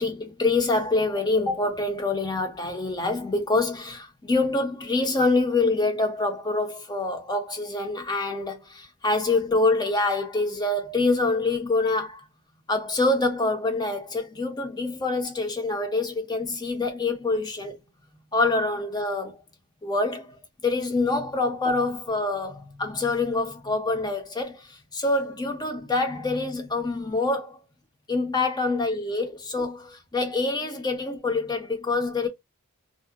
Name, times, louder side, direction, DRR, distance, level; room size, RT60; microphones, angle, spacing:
voice 1, 0.0-12.2 12.7-17.8 18.3-19.4 19.8-20.4 20.6-27.7 28.1-32.3, left 3 dB, 20° left, 0.5 m, -26 dB
2.6 x 2.1 x 2.3 m
head